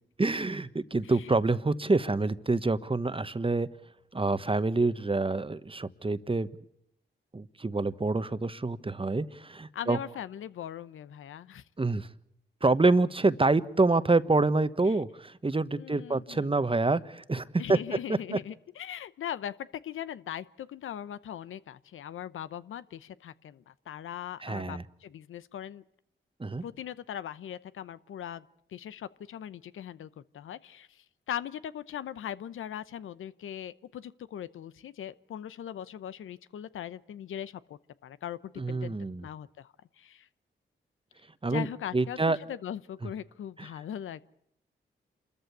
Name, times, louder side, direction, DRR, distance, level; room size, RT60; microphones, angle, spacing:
voice 1, 0.2-3.7 4.1-6.6 7.3-10.0 11.8-12.1 12.6-17.8 18.1-18.4 24.4-24.8 26.4-26.6 38.6-39.2 41.4-41.7 41.9-42.4 43.0-43.1 43.6-43.7, right 3 dB, 25° right, 14 dB, 1.2 m, -27 dB
voice 2, 9.7-11.6 15.8-16.5 17.6-19.6 19.8-25.8 26.6-28.4 28.7-40.3 41.5-44.2, left 10 dB, 85° left, 15 dB, 0.8 m, -40 dB
27.5 x 14.0 x 8.4 m, 0.79 s
supercardioid pair, 45°, 20 cm